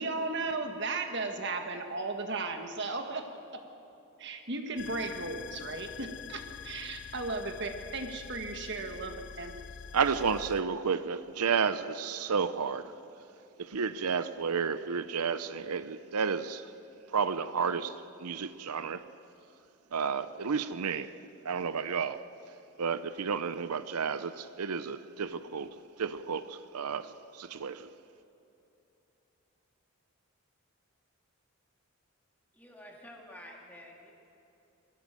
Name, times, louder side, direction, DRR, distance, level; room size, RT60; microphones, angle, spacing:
voice 1, 0.0-3.2 4.2-9.6, right 3 dB, 50° right, 1.6 m, -35 dB
sound 1, 4.8-10.6, left 7 dB, 50° left, 0.5 m, -45 dB
voice 2, 9.9-12.9 13.6-16.7 17.1-19.0 19.9-21.1 21.4-22.2 22.8-27.9, right 6 dB, 90° right, 0.7 m, -32 dB
voice 3, 32.5-34.1, left 1 dB, 5° left, 2.6 m, -50 dB
23.5 x 15.5 x 7.6 m
head